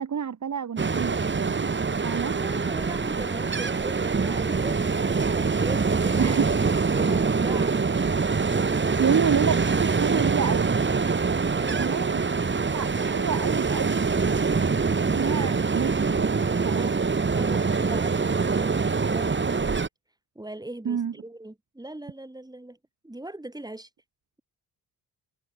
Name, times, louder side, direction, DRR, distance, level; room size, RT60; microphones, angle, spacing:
voice 1, 0.0-1.7 2.0-2.4 6.2-6.5 9.0-10.8 11.7-12.3 12.7-16.4 16.6-16.9 20.9-21.1, right 7 dB, 45° right, 2.0 m, -29 dB
Ocean, 0.8-19.9, right 4 dB, 30° right, 2.0 m, -24 dB
voice 2, 2.3-6.4 6.9-7.8 8.4-9.2 11.5-11.9 16.8-16.9 17.4-19.7 20.3-22.8 23.0-23.9, right 1 dB, 10° right, 4.4 m, -39 dB
cardioid pair, 70°, 39 cm